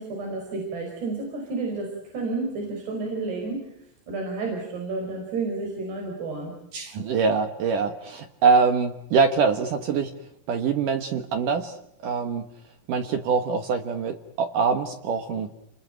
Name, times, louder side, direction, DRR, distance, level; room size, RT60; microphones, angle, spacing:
voice 1, 0.0-3.7 4.1-6.5, right 3 dB, 55° right, 1 dB, 7.0 m, -31 dB
voice 2, 6.7-10.1 10.5-11.7 12.0-12.4 12.9-15.5, right 5 dB, 75° right, 7 dB, 1.9 m, -24 dB
29.5 x 21.5 x 9.1 m, 0.76 s
omnidirectional pair, 5.8 m